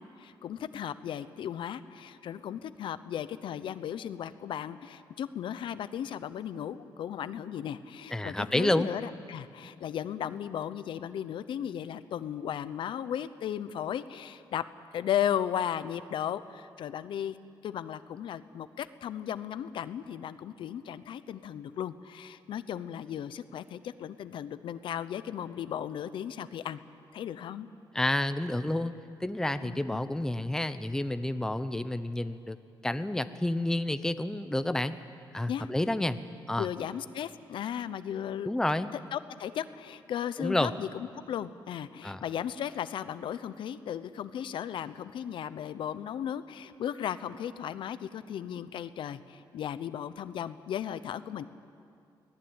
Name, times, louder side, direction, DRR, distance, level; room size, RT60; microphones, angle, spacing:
voice 1, 0.0-14.6 14.9-17.4 17.6-26.8 27.1-27.7 29.6-30.0 35.5-35.7 36.6-38.5 38.9-51.4, left 9 dB, 75° left, 13 dB, 0.8 m, -36 dB
voice 2, 8.1-8.9 27.9-28.9 29.2-32.6 32.8-34.9 35.3-36.2 36.5-36.7 38.4-38.9 40.4-40.7 42.0-42.2, left 1 dB, 5° left, 11 dB, 0.8 m, -29 dB
23.5 x 18.0 x 8.9 m, 2.4 s
cardioid pair, 110°, 9 cm